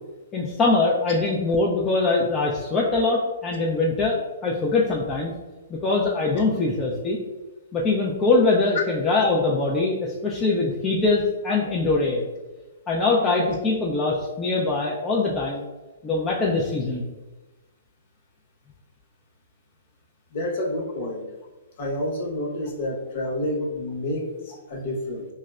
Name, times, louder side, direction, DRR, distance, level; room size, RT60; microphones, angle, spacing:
voice 1, 0.3-5.3 5.7-7.2 7.7-12.3 12.9-15.7 16.0-17.1, left 3 dB, 20° left, -4 dB, 0.4 m, -23 dB
voice 2, 20.3-21.2 21.8-25.3, left 1 dB, 55° left, -2 dB, 0.9 m, -29 dB
4.6 x 2.1 x 2.3 m, 1.1 s
hypercardioid pair, 135°, 0 cm